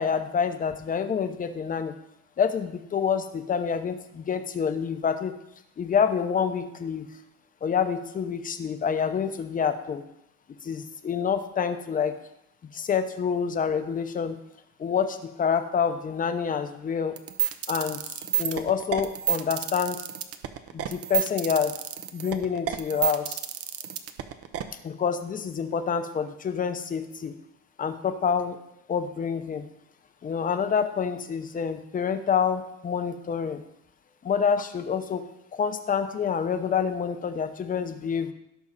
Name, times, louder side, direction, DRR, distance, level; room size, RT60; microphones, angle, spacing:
voice 1, 0.0-1.9 2.4-5.4 5.8-7.1 7.6-10.0 10.6-12.1 12.7-14.4 14.8-17.2 17.7-18.0 18.4-20.0 20.7-21.7 22.1-23.4 24.8-27.3 27.8-28.6 28.9-29.7 30.2-33.6 34.2-38.3, left 7 dB, 25° left, 9 dB, 0.8 m, -27 dB
sound 1, 17.2-24.6, right 11 dB, 50° right, 0.9 m, -29 dB
17.0 x 6.4 x 4.1 m, 0.82 s
cardioid pair, 155°, 30 cm